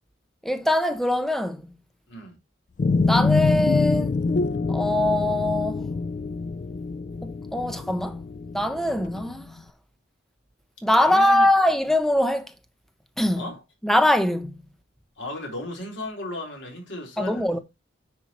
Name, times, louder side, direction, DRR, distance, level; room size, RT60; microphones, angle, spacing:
voice 1, 0.4-1.6 3.1-4.1 4.7-5.8 7.2-8.2 8.5-9.5 10.8-12.5 13.2-13.4 13.8-14.5 17.2-17.6, left 1 dB, ahead, 0.9 m, -22 dB
sound 1, 2.8-9.4, left 3 dB, 40° left, 0.3 m, -25 dB
voice 2, 11.0-11.5 13.4-13.6 15.2-17.6, left 1 dB, 75° left, 4.0 m, -35 dB
9.9 x 6.0 x 3.0 m
head